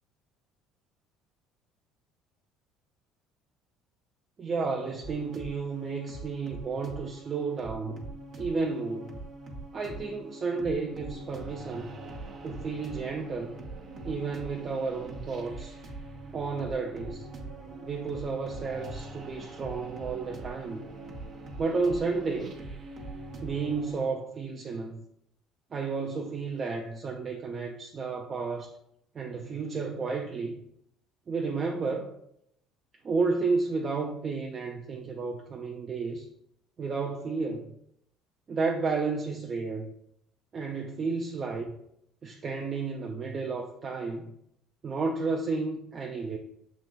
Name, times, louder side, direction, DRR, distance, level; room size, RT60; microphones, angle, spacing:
voice 1, 4.4-8.1 8.4-9.1 9.7-11.9 12.4-13.6 14.0-15.8 16.3-17.3 17.8-20.9 21.6-22.6 23.4-25.0 25.7-28.7 29.1-30.5 31.3-32.1 33.0-36.3 36.8-37.8 38.5-39.9 40.5-41.8 42.2-44.3 44.8-46.4, right 4 dB, 40° right, 0.5 m, -32 dB
sound 1, 5.0-24.1, right 2 dB, 60° right, 0.9 m, -43 dB
6.8 x 3.0 x 2.3 m
hypercardioid pair, 65°, 0 cm